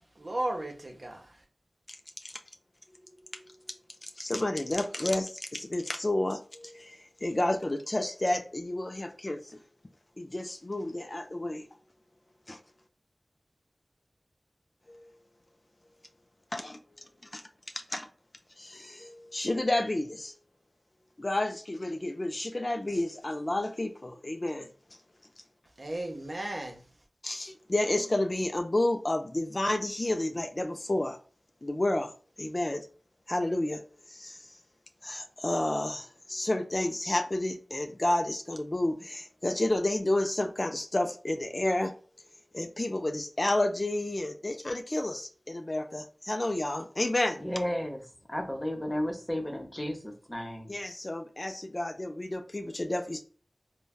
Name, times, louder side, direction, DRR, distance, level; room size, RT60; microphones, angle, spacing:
voice 1, 0.1-1.4 25.8-26.8, right 1 dB, 55° right, 0.8 m, -35 dB
voice 2, 3.3-9.6 10.2-11.7 12.5-12.6 14.9-15.0 16.5-16.8 17.3-17.4 17.9-18.1 18.6-20.3 21.2-24.7 27.2-31.2 31.6-32.1 32.4-32.9 33.3-33.8 34.1-34.6 35.0-41.9 42.5-47.4 50.7-53.2, left 1 dB, 40° left, 0.4 m, -31 dB
voice 3, 47.4-48.0 48.3-50.8, equal, 20° left, 0.8 m, -33 dB
3.2 x 2.2 x 2.3 m
wide cardioid pair, 50°, 0 cm